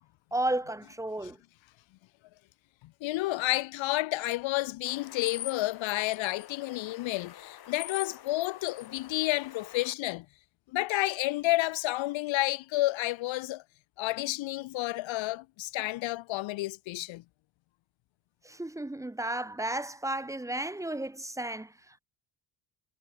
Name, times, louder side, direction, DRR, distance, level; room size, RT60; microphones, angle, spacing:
voice 1, 0.3-1.4 18.4-22.0, right 1 dB, 5° right, 1.5 m, -33 dB
voice 2, 3.0-10.3 10.7-13.6 14.0-17.2, left 18 dB, 75° left, 0.8 m, -30 dB
sound 1, 4.9-9.9, left 11 dB, 50° left, 3.6 m, -44 dB
cardioid pair, 165°, 47 cm